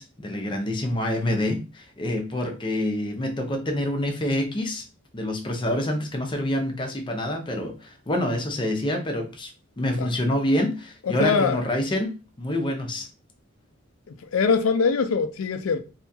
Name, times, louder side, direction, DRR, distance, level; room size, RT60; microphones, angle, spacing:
voice 1, 0.0-4.8 5.1-9.5 9.8-13.1, left 1 dB, 25° left, 0.6 m, -27 dB
voice 2, 11.0-11.6 14.3-15.8, left 5 dB, 80° left, 0.4 m, -22 dB
2.7 x 2.3 x 2.6 m
head